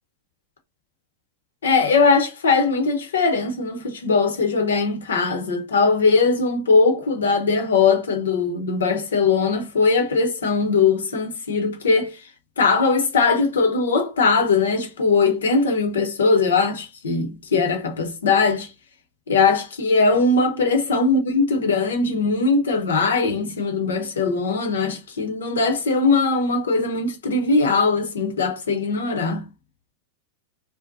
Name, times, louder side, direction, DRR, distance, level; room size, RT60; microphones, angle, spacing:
voice 1, 1.6-12.2 12.6-18.7 19.3-29.4, left 4 dB, 75° left, 0.7 m, -20 dB
2.6 x 2.1 x 2.5 m
figure-of-eight pair, 90°, 0 cm